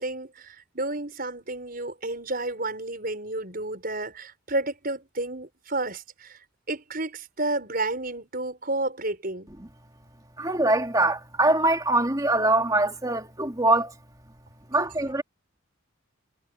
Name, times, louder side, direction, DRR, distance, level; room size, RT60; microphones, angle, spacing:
voice 1, 0.0-6.4 6.7-9.5, right 2 dB, 45° right, 6.2 m, -31 dB
voice 2, 10.4-13.9 14.7-15.2, right 2 dB, 15° right, 3.0 m, -23 dB
head